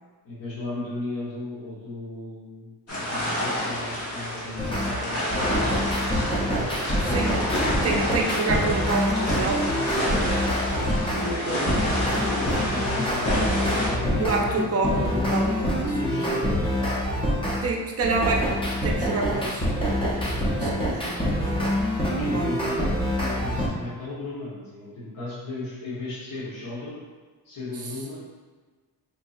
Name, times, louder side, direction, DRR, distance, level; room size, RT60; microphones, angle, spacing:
voice 1, 0.2-5.6 12.1-14.4 14.9-15.4 15.9-17.4 22.0-22.9 23.2-27.0 27.4-28.3, left 2 dB, 60° left, -8 dB, 1.0 m, -36 dB
sound 1, 2.9-13.9, left 1 dB, 40° left, 1.1 m, -29 dB
sound 2, 4.6-4.9 5.3-11.3 11.7-17.6 18.0-23.7, equal, 15° left, 0.5 m, -26 dB
voice 2, 7.0-7.3 7.7-9.9 10.4-11.8 14.2-16.5 17.6-19.7 20.4-21.6 22.1-22.6, right 3 dB, 40° right, 1 dB, 0.5 m, -29 dB
sound 3, 11.4-16.3, left 2 dB, 80° left, 1.5 m, -37 dB
4.4 x 2.7 x 2.3 m, 1.4 s
wide cardioid pair, 155°, 38 cm